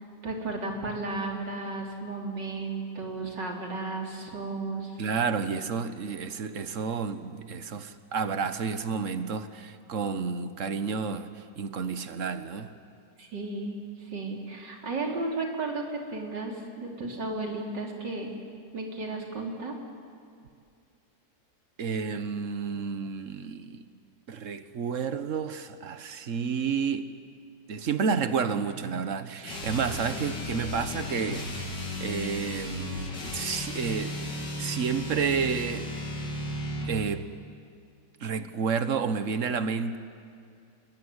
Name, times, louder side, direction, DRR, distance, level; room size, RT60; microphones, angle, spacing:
voice 1, 0.0-5.0 13.2-18.3 18.7-19.7, right 3 dB, 85° right, 1 dB, 3.9 m, -34 dB
voice 2, 5.0-11.3 11.6-12.7 21.8-23.8 24.3-27.1 27.7-35.9 36.8-37.3 38.2-40.0, right 6 dB, 50° right, 11 dB, 1.4 m, -30 dB
sound 1, 29.4-37.0, left 1 dB, 90° left, 3.9 m, -35 dB
27.0 x 21.5 x 9.8 m, 2.3 s
omnidirectional pair, 1.9 m